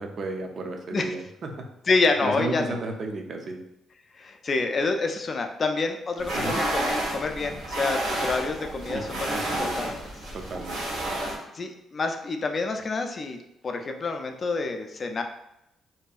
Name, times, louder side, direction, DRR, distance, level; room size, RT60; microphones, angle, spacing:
voice 1, 0.0-1.7 2.2-3.6 6.3-6.6 8.9-9.0 9.3-9.8 10.3-10.8, right 2 dB, 55° right, 3 dB, 0.4 m, -33 dB
voice 2, 1.9-2.8 4.2-9.9 11.5-13.4 13.6-15.2, left 3 dB, 40° left, 5 dB, 0.3 m, -28 dB
sound 1, 6.2-11.4, right 1 dB, 85° right, 0.9 m, -30 dB
2.6 x 2.3 x 2.3 m, 0.83 s
cardioid pair, 90°, 0 cm